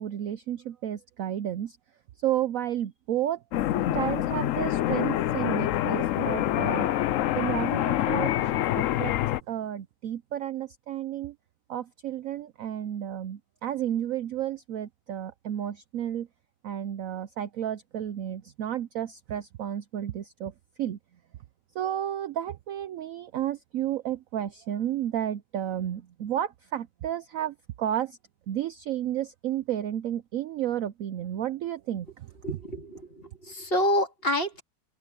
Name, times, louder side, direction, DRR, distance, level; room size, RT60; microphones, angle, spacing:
voice 1, 0.0-1.8 2.2-3.4 3.9-6.9 7.3-8.3 8.7-9.1 9.5-11.4 11.7-16.3 16.6-20.5 20.8-21.0 21.7-28.2 28.5-32.3, right 11 dB, 65° right, 0.8 m, -32 dB
sound 1, 3.5-9.4, left 13 dB, 70° left, 0.7 m, -26 dB
voice 2, 32.4-34.6, left 1 dB, 30° left, 2.5 m, -28 dB
open air
omnidirectional pair, 1.9 m